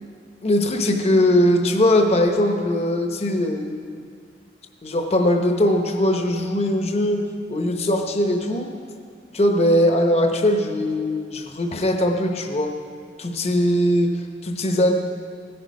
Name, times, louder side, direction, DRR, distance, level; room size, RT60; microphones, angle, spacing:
voice 1, 0.4-3.9 4.8-8.7 9.3-12.8 13.2-14.9, left 1 dB, 35° left, 4 dB, 0.9 m, -20 dB
16.0 x 9.0 x 5.2 m, 2.2 s
head